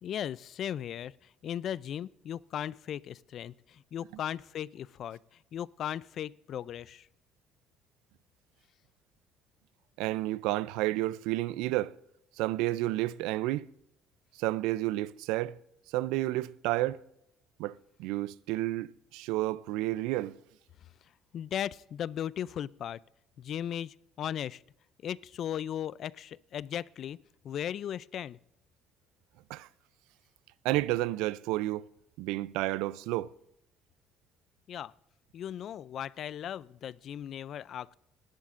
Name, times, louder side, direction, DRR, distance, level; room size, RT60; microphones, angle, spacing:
voice 1, 0.0-1.1 1.4-5.2 5.5-7.1 21.3-23.0 23.4-24.6 25.0-27.2 27.4-28.4 34.7-34.9 35.3-37.9, left 10 dB, 55° left, 0.4 m, -37 dB
voice 2, 10.0-11.9 12.4-13.7 14.4-15.6 15.9-17.0 17.6-20.3 29.5-29.7 30.6-31.9 32.2-33.3, right 17 dB, 90° right, 0.4 m, -31 dB
19.5 x 11.5 x 2.5 m
cardioid pair, 115°, 0 cm